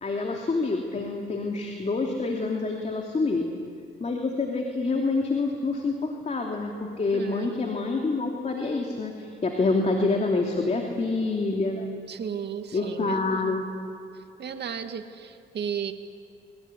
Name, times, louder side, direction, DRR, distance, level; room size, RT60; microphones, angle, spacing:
voice 1, 0.0-3.5 4.0-11.9 12.7-13.6, left 3 dB, 35° left, 2 dB, 3.0 m, -27 dB
voice 2, 7.1-7.6 12.1-13.6 14.1-15.9, right 7 dB, 60° right, 6 dB, 2.4 m, -34 dB
25.0 x 22.0 x 9.9 m, 2.5 s
cardioid pair, 90°, 20 cm